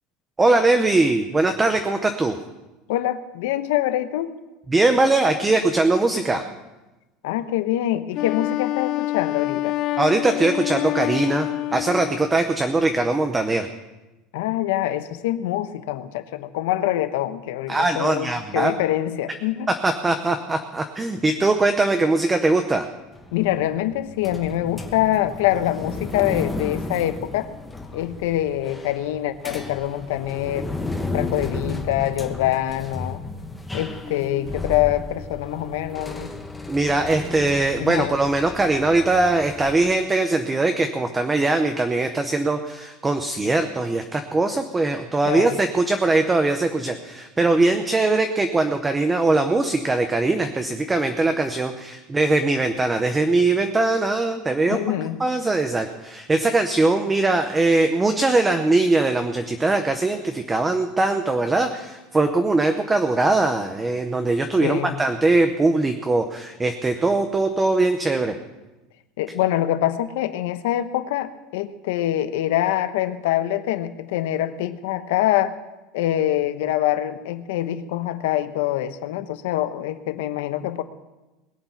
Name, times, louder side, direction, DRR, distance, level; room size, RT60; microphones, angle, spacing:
voice 1, 0.4-2.4 4.7-6.4 10.0-13.7 17.7-18.7 19.7-22.9 36.7-54.8 55.2-68.4, right 2 dB, 10° right, 7 dB, 0.7 m, -21 dB
voice 2, 2.9-4.3 7.2-9.7 14.3-19.7 23.3-27.5 27.9-30.7 31.1-33.2 33.7-36.3 37.8-38.1 45.2-45.6 54.7-55.2 64.6-65.0 69.2-75.5 75.9-80.8, left 13 dB, 80° left, 11 dB, 1.0 m, -24 dB
Wind instrument woodwind instrument, 8.1-12.5, left 16 dB, 45° left, 0.4 m, -27 dB
sound 1, 23.1-39.8, left 2 dB, 5° left, 1.1 m, -34 dB
21.0 x 8.6 x 5.8 m, 1.1 s
cardioid pair, 165°, 0 cm